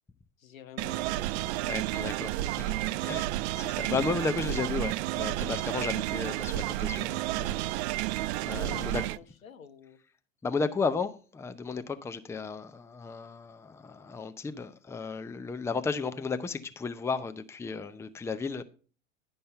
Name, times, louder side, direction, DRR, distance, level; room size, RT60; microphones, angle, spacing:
voice 1, 0.4-1.6 2.9-3.2 8.7-10.0, left 7 dB, 85° left, 1.1 m, -48 dB
sound 1, 0.8-9.2, right 16 dB, 55° right, 0.5 m, -31 dB
voice 2, 1.6-2.8 3.0-3.3 3.6-7.7 7.9-8.0 8.5-9.0 10.4-18.6, left 4 dB, 5° left, 0.5 m, -34 dB
10.5 x 5.4 x 5.5 m
hypercardioid pair, 90°, 39 cm